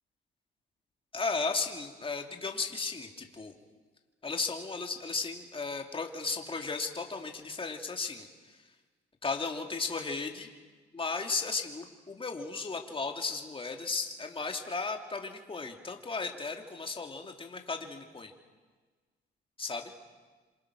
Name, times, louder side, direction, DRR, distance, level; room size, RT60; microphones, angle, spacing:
voice 1, 1.1-3.5 4.2-8.6 9.2-10.5 10.9-18.3 19.6-19.9, left 4 dB, 25° left, 3 dB, 2.7 m, -35 dB
27.5 x 27.0 x 6.3 m, 1.4 s
cardioid pair, 90°, 20 cm